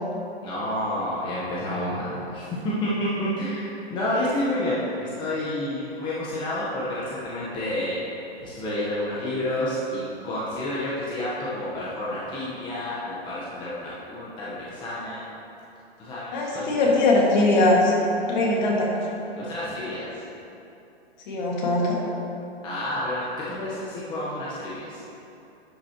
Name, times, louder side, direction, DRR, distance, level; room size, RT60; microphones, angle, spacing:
voice 1, 0.4-8.0 8.4-15.2 16.0-16.7 19.3-20.2 22.6-25.0, left 1 dB, 15° left, -8 dB, 0.9 m, -29 dB
voice 2, 16.3-17.9 18.3-18.9 21.3-22.0, left 2 dB, 45° left, -2 dB, 1.8 m, -21 dB
11.0 x 6.1 x 2.9 m, 2.8 s
hypercardioid pair, 145°, 32 cm